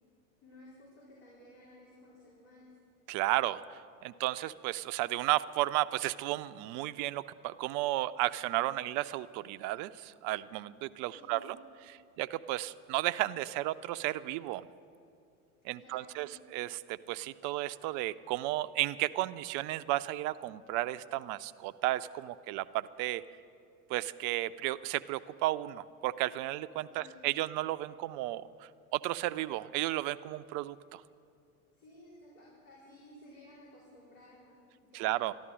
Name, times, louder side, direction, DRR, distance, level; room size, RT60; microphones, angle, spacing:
voice 1, 0.4-2.7 11.0-11.5 15.8-16.5 26.9-27.3 31.7-35.2, left 1 dB, 70° left, -7 dB, 4.3 m, -56 dB
voice 2, 3.1-11.6 11.9-14.7 15.6-23.2 23.9-31.0 34.9-35.3, right 16 dB, 45° right, 14 dB, 0.5 m, -33 dB
12.5 x 12.0 x 7.5 m, 2.5 s
hypercardioid pair, 80°, 44 cm